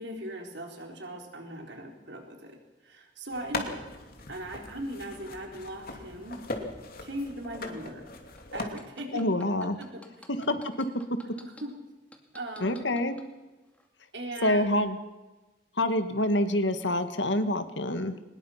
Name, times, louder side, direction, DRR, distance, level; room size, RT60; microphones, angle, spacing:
voice 1, 0.0-2.6 2.8-3.8 4.3-6.4 7.0-8.1 8.5-9.2 9.6-10.0 11.4-11.7 12.3-12.9 14.1-14.8, right 1 dB, 70° right, 3 dB, 4.2 m, -39 dB
sound 1, 3.3-8.6, left 2 dB, 55° left, 2.9 m, -39 dB
sound 2, 8.4-11.6 12.1-13.3 13.7-13.9, left 1 dB, 10° left, 2.4 m, -50 dB
voice 2, 9.1-9.8 10.5-10.7 12.6-13.2 14.4-15.0 15.8-18.2, left 1 dB, 90° left, 9 dB, 1.8 m, -26 dB
23.0 x 20.5 x 5.9 m, 1.1 s
head